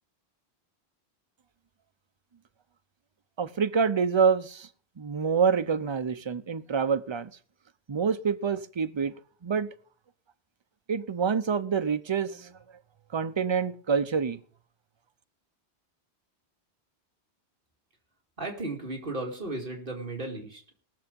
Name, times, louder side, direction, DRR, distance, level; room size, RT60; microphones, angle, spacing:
voice 1, 3.4-4.7 5.0-7.3 7.9-9.1 9.4-9.7 10.9-12.5 13.1-14.4, right 6 dB, 35° right, 0.5 m, -26 dB
voice 2, 18.4-20.6, right 2 dB, 55° right, 2.4 m, -35 dB
19.0 x 6.9 x 5.3 m
omnidirectional pair, 1.1 m